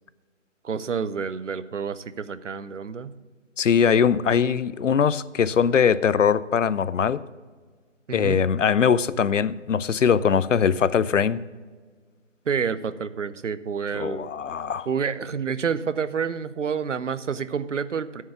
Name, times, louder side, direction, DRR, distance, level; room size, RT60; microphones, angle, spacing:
voice 1, 0.6-3.1 8.1-8.4 12.5-14.3 14.9-18.2, right 6 dB, 70° right, 0.7 m, -28 dB
voice 2, 3.6-7.2 8.1-11.4 13.9-14.9, left 7 dB, 75° left, 0.5 m, -21 dB
13.5 x 4.6 x 6.0 m
figure-of-eight pair, 165°, 38 cm